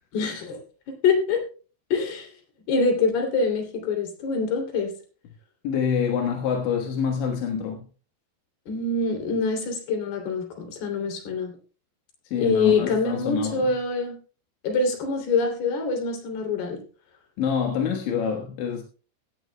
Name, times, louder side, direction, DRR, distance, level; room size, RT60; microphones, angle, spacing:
voice 1, 0.1-0.6 0.9-1.4 1.9-2.3 2.7-4.9 8.7-11.5 12.4-14.2 14.6-16.8, left 4 dB, 65° left, 4.9 m, -25 dB
voice 2, 5.6-7.8 12.3-13.7 17.4-18.8, left 7 dB, 85° left, 3.7 m, -26 dB
17.0 x 14.5 x 2.2 m
omnidirectional pair, 5.0 m